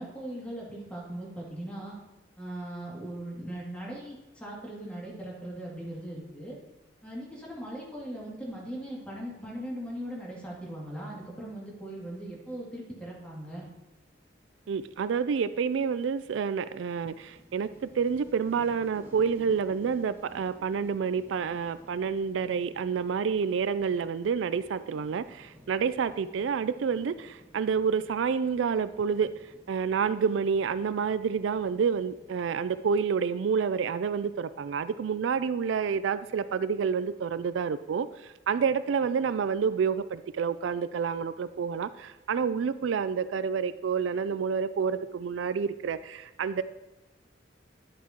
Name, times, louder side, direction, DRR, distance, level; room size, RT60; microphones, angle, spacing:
voice 1, 0.0-2.0 2.4-6.6 7.0-13.7, right 1 dB, 5° left, -5 dB, 2.5 m, -39 dB
sound 1, 13.9-32.9, equal, 10° right, 1.3 m, -55 dB
voice 2, 14.7-29.3 29.7-46.6, right 6 dB, 80° right, 14 dB, 0.4 m, -29 dB
10.5 x 8.3 x 3.0 m, 1.1 s
head